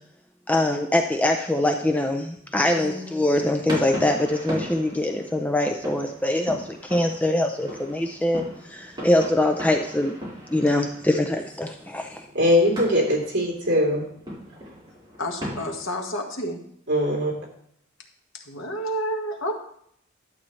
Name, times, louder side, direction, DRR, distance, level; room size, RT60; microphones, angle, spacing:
voice 1, 0.5-10.2 10.5-12.3, left 1 dB, 10° left, 4 dB, 0.5 m, -23 dB
voice 2, 2.7-3.1 15.2-16.6 18.3-19.5, equal, 75° left, 2 dB, 1.5 m, -30 dB
sound 1, 3.3-15.9, equal, 20° right, 4.4 m, -38 dB
voice 3, 12.3-14.0 16.9-17.3, left 1 dB, 60° right, -4 dB, 3.2 m, -21 dB
11.5 x 8.3 x 3.2 m, 0.68 s
head